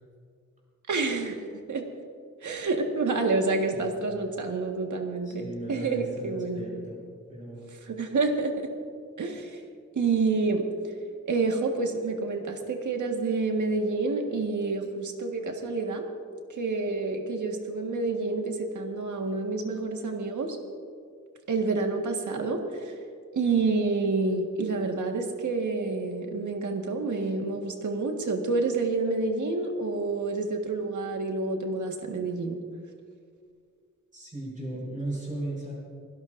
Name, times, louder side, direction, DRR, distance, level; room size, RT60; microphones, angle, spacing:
voice 1, 0.9-1.8 2.4-6.7 7.8-8.7 9.2-9.6 9.9-10.9 11.2-16.0 16.5-20.6 21.5-22.9 23.3-32.6, right 3 dB, 75° right, 2 dB, 1.7 m, -28 dB
voice 2, 5.2-7.0 7.3-7.6 34.1-35.7, right 1 dB, 25° right, -4 dB, 4.9 m, -36 dB
23.5 x 17.5 x 2.6 m, 2.2 s
wide cardioid pair, 170°, 30 cm